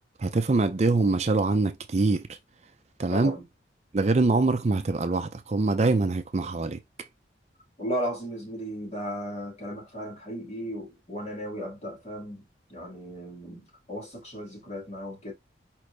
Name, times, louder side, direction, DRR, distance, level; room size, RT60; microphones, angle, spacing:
voice 1, 0.2-2.4 3.0-3.4 3.9-6.8, right 3 dB, 35° right, 0.5 m, -24 dB
voice 2, 3.1-3.5 7.8-15.3, equal, 35° left, 2.2 m, -35 dB
5.0 x 2.9 x 3.2 m
head